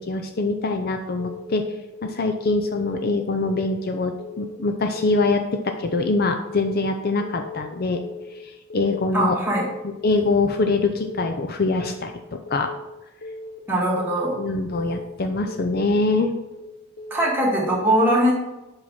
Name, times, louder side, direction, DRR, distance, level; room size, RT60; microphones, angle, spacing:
voice 1, 0.0-1.6 2.0-8.0 8.3-9.3 9.8-12.7 14.3-16.3, left 3 dB, 50° left, 6 dB, 0.5 m, -24 dB
Keyboard (musical) / Alarm, 1.2-1.6 1.9-2.3 2.7-3.1 3.4-3.8 4.2-4.6 4.9-5.3 5.7-6.1 6.4-6.8 7.2-7.6 7.9-8.3 8.7-9.1 9.5-9.8 10.2-10.6 11.0-11.3 11.7-12.1 12.5-12.8 13.2-13.6 14.0-14.3 14.7-15.1 15.5-15.8 16.2-16.6 17.0-17.4, left 2 dB, 65° left, 0.9 m, -38 dB
voice 2, 9.1-9.7 13.7-14.4 17.1-18.3, right 1 dB, 10° right, -5 dB, 1.9 m, -21 dB
7.4 x 4.8 x 4.2 m, 0.96 s
head